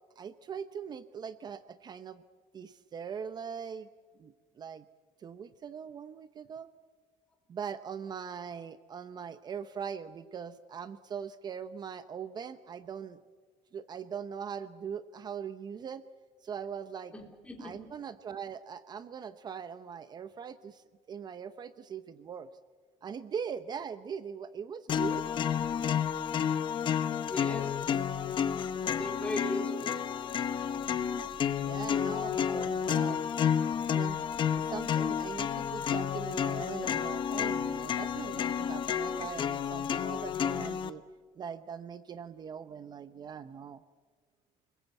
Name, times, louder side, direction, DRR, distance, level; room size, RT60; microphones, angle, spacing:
voice 1, 0.2-2.2 2.5-3.9 4.2-4.8 5.2-6.7 7.5-13.2 13.7-16.0 16.4-17.1 17.6-22.5 23.0-25.3 31.6-33.3 33.9-34.2 34.5-41.0 41.4-43.8, right 7 dB, 30° right, 12 dB, 0.8 m, -41 dB
voice 2, 17.1-17.9 27.3-27.8 28.9-30.0 32.5-32.6 34.7-34.8, left 1 dB, 10° left, 1 dB, 3.6 m, -38 dB
sound 1, 24.9-40.9, left 8 dB, 35° left, 1.0 m, -31 dB
29.5 x 21.0 x 8.2 m, 1.5 s
cardioid pair, 165°, 14 cm